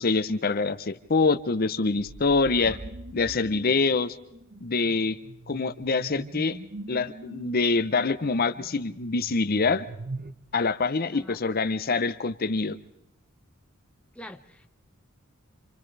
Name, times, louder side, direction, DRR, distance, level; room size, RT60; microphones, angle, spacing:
voice 1, 0.0-2.8 3.1-4.2 4.6-5.2 5.5-6.6 6.9-9.9 10.5-12.8, left 4 dB, 45° left, 11 dB, 0.7 m, -25 dB
sound 1, 2.0-10.3, right 2 dB, 45° right, 0.8 m, -42 dB
voice 2, 11.0-11.6 14.1-14.7, left 1 dB, 5° left, 5 dB, 0.9 m, -45 dB
30.0 x 27.0 x 3.3 m, 0.86 s
head